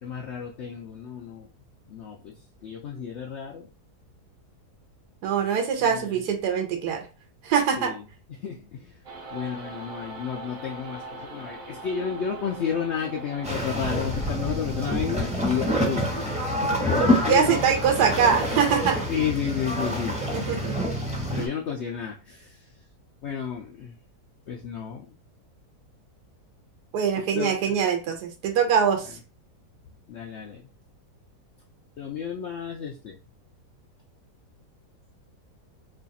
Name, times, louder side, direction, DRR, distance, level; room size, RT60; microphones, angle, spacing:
voice 1, 0.0-1.5 1.9-2.3 2.6-3.7 5.8-6.1 7.8-7.9 8.4-8.9 9.3-16.1 16.6-17.6 19.1-20.2 21.3-22.5 23.2-23.9 24.5-25.1 27.3-27.8 30.1-30.6 32.0-33.2, left 7 dB, 80° left, 0.6 m, -31 dB
voice 2, 5.2-7.1 7.4-7.9 17.3-19.0 20.3-20.7 26.9-29.2, right 7 dB, 75° right, 1.3 m, -23 dB
sound 1, 9.0-17.2, right 2 dB, 60° right, 1.1 m, -42 dB
sound 2, 13.4-21.5, equal, 5° right, 0.6 m, -27 dB
3.2 x 2.3 x 4.0 m
omnidirectional pair, 1.8 m